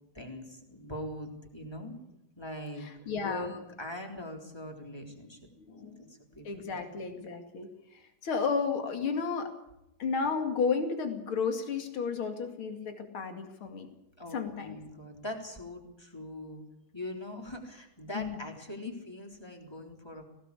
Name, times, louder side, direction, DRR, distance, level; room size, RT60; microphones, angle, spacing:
voice 1, 0.1-2.0 2.4-6.1 6.4-6.8 14.2-16.6 16.9-20.2, left 1 dB, 10° left, 2 dB, 3.6 m, -42 dB
voice 2, 2.8-3.5 5.6-6.1 6.4-9.5 10.0-13.9 14.3-14.8 18.1-18.4 18.9-19.0, left 5 dB, 75° left, 6 dB, 3.1 m, -33 dB
19.0 x 17.5 x 8.4 m, 0.86 s
omnidirectional pair, 2.3 m